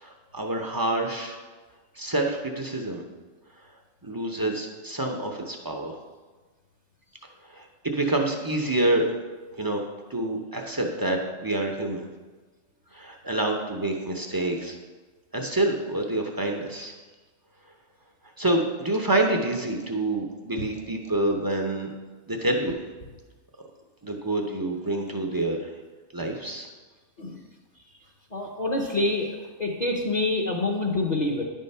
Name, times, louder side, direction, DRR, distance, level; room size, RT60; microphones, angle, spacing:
voice 1, 0.0-1.4 2.0-3.0 4.0-6.0 7.5-9.1 9.6-9.8 10.1-12.1 12.9-14.8 15.3-16.9 18.4-21.9 22.3-22.8 24.0-25.6 26.1-26.7, right 2 dB, 25° right, 2 dB, 0.5 m, -27 dB
voice 2, 28.3-29.3 29.6-31.4, left 2 dB, 40° left, -1 dB, 0.8 m, -26 dB
10.0 x 3.7 x 5.4 m, 1.3 s
omnidirectional pair, 1.3 m